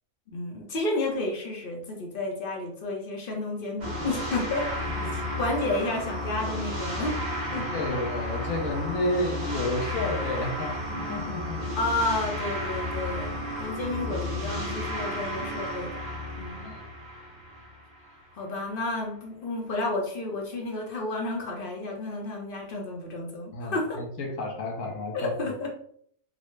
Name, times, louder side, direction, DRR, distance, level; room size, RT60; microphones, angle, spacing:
voice 1, 0.3-4.7 5.1-7.2 7.5-7.7 11.7-16.0 16.3-16.8 18.3-24.0 25.1-25.7, left 2 dB, 50° left, 0 dB, 0.8 m, -31 dB
sound 1, 3.8-18.1, left 1 dB, 40° right, 0.8 m, -33 dB
voice 2, 7.5-11.6 16.6-16.8 23.5-25.3, left 2 dB, 80° left, 0 dB, 1.2 m, -31 dB
3.9 x 2.0 x 3.1 m, 0.63 s
omnidirectional pair, 1.4 m